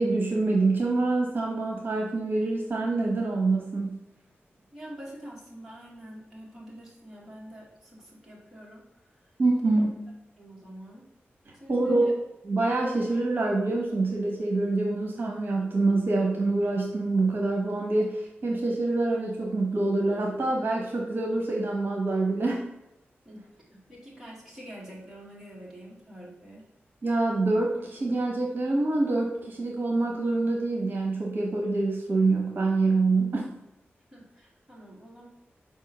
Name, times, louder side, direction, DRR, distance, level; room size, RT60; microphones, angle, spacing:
voice 1, 0.0-4.0 9.4-9.9 11.7-12.2 12.4-22.6 27.0-33.4, right 2 dB, 55° right, -1 dB, 1.1 m, -26 dB
voice 2, 4.7-9.1 9.6-9.9 10.4-11.1 11.6-12.1 23.3-26.7 34.1-35.3, equal, 10° right, -5 dB, 2.0 m, -46 dB
4.8 x 3.6 x 5.6 m, 0.92 s
wide cardioid pair, 135°, 4 cm